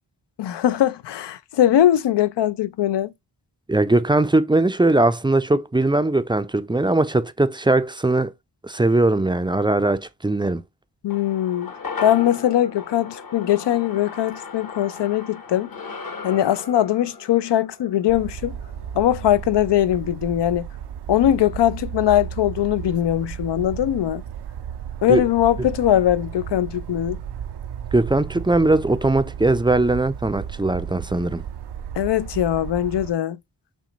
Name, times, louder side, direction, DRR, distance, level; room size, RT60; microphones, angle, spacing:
voice 1, 0.4-3.1 11.0-11.7 12.0-15.7 16.2-18.5 18.9-20.7 21.1-24.2 25.0-27.2 32.0-33.4, left 12 dB, 75° left, 0.5 m, -21 dB
voice 2, 3.7-8.3 8.6-10.6 25.1-25.2 27.9-31.4, right 2 dB, 10° right, 0.4 m, -20 dB
sound 1, 11.1-19.6 19.9-20.0, left 5 dB, 55° left, 1.1 m, -37 dB
sound 2, 18.1-33.1, right 9 dB, 70° right, 0.5 m, -34 dB
6.1 x 2.2 x 3.9 m
cardioid pair, 60°, 42 cm